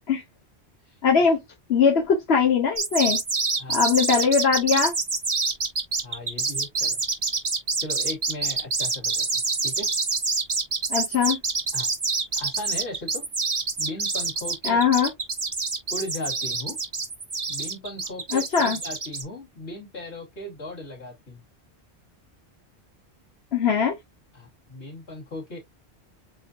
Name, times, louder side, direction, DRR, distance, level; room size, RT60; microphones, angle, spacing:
voice 1, 1.0-1.4 1.7-3.2 3.7-4.9 10.9-11.4 14.7-15.1 18.3-18.8 23.5-24.0, left 6 dB, 70° left, 1.2 m, -21 dB
sound 1, 2.8-19.2, right 4 dB, 30° right, 0.8 m, -26 dB
voice 2, 6.0-7.0 7.8-9.9 11.7-11.9 12.3-13.2 13.8-14.8 15.9-16.8 17.5-21.4 24.3-25.6, left 1 dB, 85° left, 2.9 m, -37 dB
7.6 x 2.7 x 2.4 m
omnidirectional pair, 1.1 m